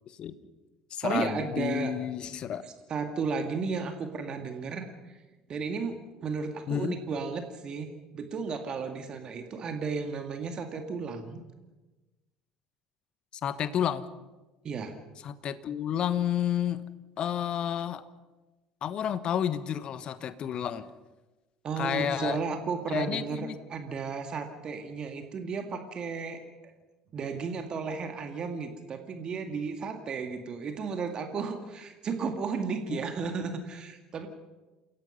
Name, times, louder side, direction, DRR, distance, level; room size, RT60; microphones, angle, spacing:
voice 1, 0.1-0.4 0.9-2.6 6.7-7.0 13.4-14.1 15.2-16.8 17.2-18.0 18.8-20.9 21.8-22.4 22.9-23.6 32.9-33.0, left 9 dB, 45° left, 14 dB, 1.2 m, -30 dB
voice 2, 1.0-1.9 2.9-5.2 5.5-11.4 14.6-15.0 21.6-26.4 27.1-34.3, right 5 dB, 40° right, 6 dB, 2.2 m, -34 dB
28.5 x 17.5 x 5.6 m, 1.1 s
figure-of-eight pair, 60°, 2 cm